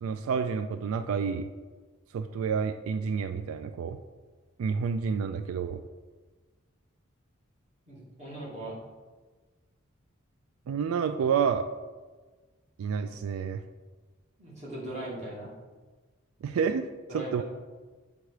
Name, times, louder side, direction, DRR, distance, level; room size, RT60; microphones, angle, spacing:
voice 1, 0.0-1.5 2.1-4.0 4.6-5.8 10.7-11.7 12.8-13.6 16.4-17.4, right 6 dB, 90° right, 9 dB, 0.3 m, -29 dB
voice 2, 7.9-8.8 14.4-15.5 17.1-17.4, right 1 dB, 35° right, -7 dB, 2.1 m, -39 dB
7.8 x 3.6 x 4.8 m, 1.3 s
head